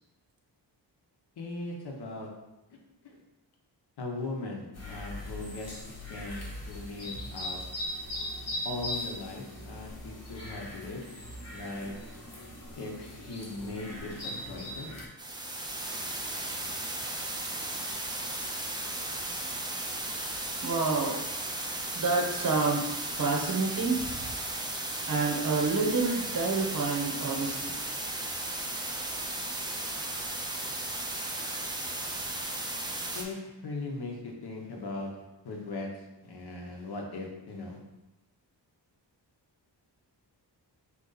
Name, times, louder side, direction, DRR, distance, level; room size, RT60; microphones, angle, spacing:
voice 1, 1.4-2.3 3.0-3.2 4.0-5.7 6.1-6.4 6.7-7.6 8.6-11.0 11.5-11.9 12.8-14.9 33.1-35.1 35.4-35.9 36.2-37.8, left 2 dB, 60° left, 0 dB, 0.9 m, -39 dB
sound 1, 4.7-15.1, left 1 dB, 35° left, 0.9 m, -40 dB
sound 2, 15.2-33.2, right 2 dB, 10° right, 0.4 m, -35 dB
voice 2, 20.6-21.2 21.9-24.3 25.1-27.7, right 4 dB, 50° right, 0 dB, 0.8 m, -28 dB
3.9 x 3.0 x 3.9 m, 0.97 s
wide cardioid pair, 135°, 43 cm